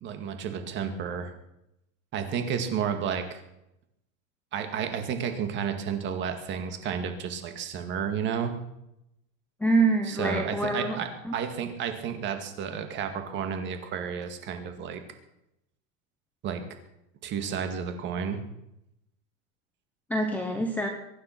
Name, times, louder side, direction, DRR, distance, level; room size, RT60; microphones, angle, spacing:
voice 1, 0.0-1.3 2.1-3.4 4.5-8.5 10.1-15.0 16.4-16.6 17.2-18.4, right 7 dB, 25° right, 6 dB, 2.1 m, -31 dB
voice 2, 9.6-11.0 11.2-11.4 20.1-20.9, right 2 dB, 5° left, 3 dB, 1.1 m, -25 dB
23.5 x 9.6 x 6.0 m, 0.84 s
supercardioid pair, 165°, 41 cm